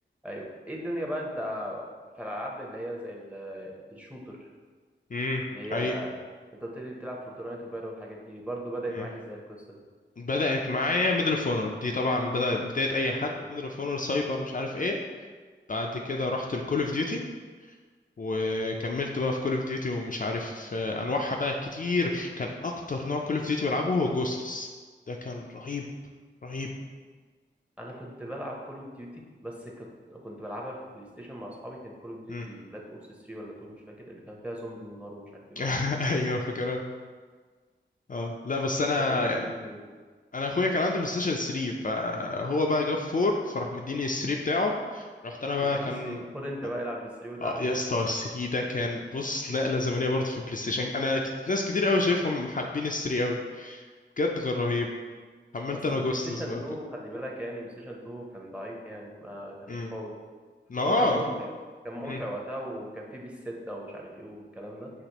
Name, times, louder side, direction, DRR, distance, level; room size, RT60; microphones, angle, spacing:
voice 1, 0.2-1.9 2.2-4.5 5.5-6.1 6.5-9.8 13.3-13.5 27.8-35.6 39.1-39.8 45.6-47.7 55.9-60.1 60.8-61.5 61.8-64.9, equal, 5° right, -2 dB, 0.8 m, -38 dB
voice 2, 5.1-5.4 5.7-6.0 9.0-9.1 10.2-15.0 15.7-17.2 18.2-24.7 25.1-25.8 26.4-26.7 32.3-32.5 35.6-36.8 38.1-39.5 40.3-46.2 47.4-53.8 54.2-54.9 55.5-56.6 59.7-59.9 60.7-61.2 62.1-62.2, left 2 dB, 45° left, 1 dB, 0.4 m, -28 dB
5.9 x 3.0 x 3.0 m, 1.5 s
wide cardioid pair, 60°, 20 cm